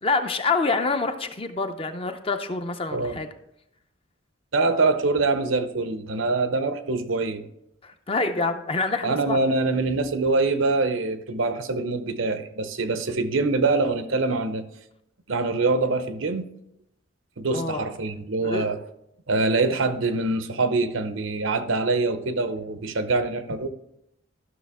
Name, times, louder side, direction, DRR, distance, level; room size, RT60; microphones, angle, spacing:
voice 1, 0.0-3.3 7.8-9.4 17.5-17.9 18.4-18.7, left 3 dB, 30° left, 8 dB, 0.5 m, -26 dB
voice 2, 4.5-7.5 9.0-14.6 15.3-16.5 17.4-18.8 19.3-23.7, right 3 dB, 80° right, 10 dB, 0.7 m, -24 dB
12.5 x 6.3 x 3.5 m, 0.80 s
head